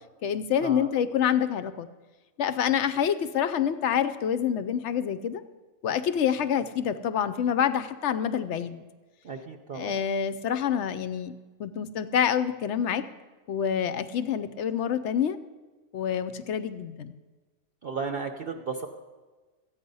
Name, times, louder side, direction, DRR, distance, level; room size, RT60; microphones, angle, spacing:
voice 1, 0.2-1.9 2.4-5.4 5.8-8.8 9.7-13.0 13.5-15.4 15.9-17.1, left 8 dB, 65° left, 12 dB, 0.8 m, -27 dB
voice 2, 9.2-9.9 17.8-18.9, right 5 dB, 50° right, 5 dB, 0.8 m, -34 dB
13.5 x 8.8 x 5.4 m, 1.3 s
omnidirectional pair, 1.4 m